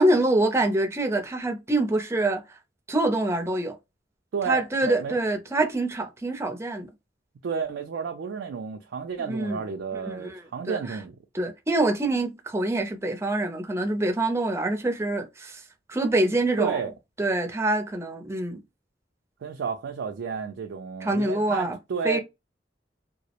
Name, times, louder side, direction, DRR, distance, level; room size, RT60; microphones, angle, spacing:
voice 1, 0.0-2.4 2.9-3.8 4.5-6.9 9.3-9.6 10.0-10.4 10.7-10.8 11.3-15.6 15.9-16.8 17.2-18.6 21.0-21.8 22.0-22.2, right 2 dB, 15° right, 0.4 m, -25 dB
voice 2, 4.3-5.2 7.4-11.2 16.6-16.9 19.4-22.2, right 6 dB, 85° right, 0.4 m, -31 dB
2.2 x 2.0 x 2.8 m
head